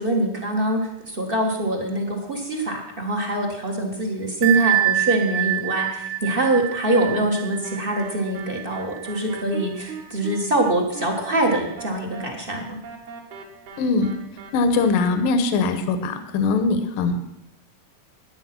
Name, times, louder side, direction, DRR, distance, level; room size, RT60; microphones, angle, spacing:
voice 1, 0.0-12.8, right 1 dB, 35° right, 1 dB, 0.8 m, -24 dB
Bell, 4.4-9.9, right 13 dB, 85° right, 2.7 m, -26 dB
sound 1, 7.6-15.1, right 6 dB, 60° right, 2.8 m, -39 dB
voice 2, 13.8-14.1 14.5-17.2, left 4 dB, 80° left, 9 dB, 2.7 m, -21 dB
13.5 x 9.9 x 6.0 m, 0.91 s
omnidirectional pair, 3.9 m